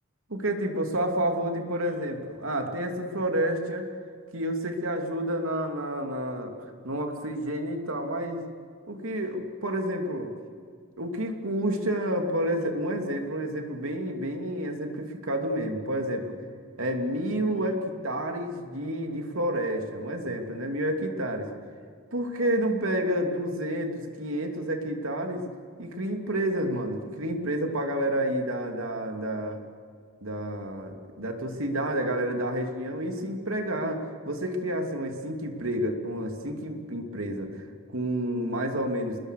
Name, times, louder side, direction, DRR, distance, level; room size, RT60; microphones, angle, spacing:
voice 1, 0.3-3.9 4.3-8.4 8.9-10.3 11.0-16.3 16.8-21.5 22.1-25.4 25.8-29.6 30.2-37.7 37.9-39.2, right 1 dB, 80° right, 4 dB, 3.0 m, -29 dB
28.5 x 21.0 x 6.6 m, 2.2 s
head